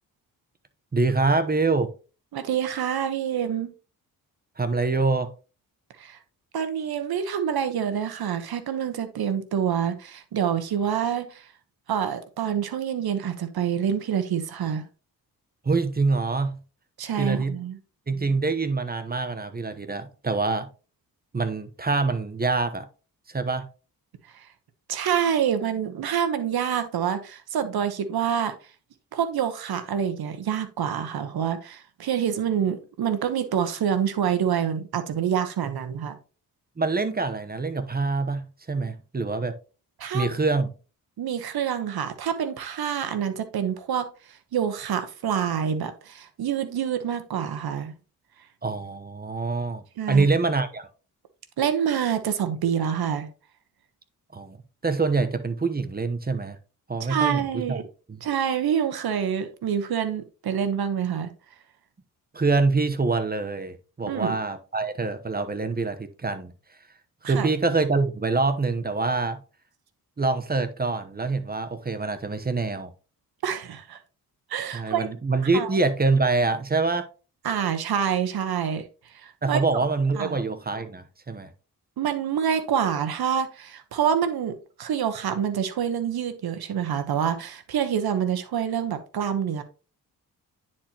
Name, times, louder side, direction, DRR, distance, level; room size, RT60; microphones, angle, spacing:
voice 1, 0.9-1.9 4.6-5.3 15.6-16.6 17.2-17.6 18.1-20.7 21.3-22.9 23.3-23.7 36.8-39.6 40.1-40.7 48.6-50.9 54.3-54.6 54.8-56.6 56.9-57.8 58.1-58.2 62.3-66.5 67.2-69.4 70.2-72.9 74.7-77.1 79.4-81.5, right 3 dB, 25° right, 0.9 m, -25 dB
voice 2, 2.3-3.7 6.0-6.2 6.5-11.5 11.9-14.9 17.0-17.8 24.3-24.5 24.9-28.5 29.1-36.2 40.0-40.3 41.2-44.1 44.5-47.9 50.0-50.3 51.6-53.3 57.1-57.9 58.2-61.3 64.1-64.3 67.2-67.5 73.4-74.0 74.5-75.1 75.5-75.7 77.4-78.8 79.1-79.6 80.2-80.4 82.0-89.6, right 8 dB, 75° right, 1.1 m, -27 dB
9.8 x 4.4 x 2.9 m
cardioid pair, 75°, 38 cm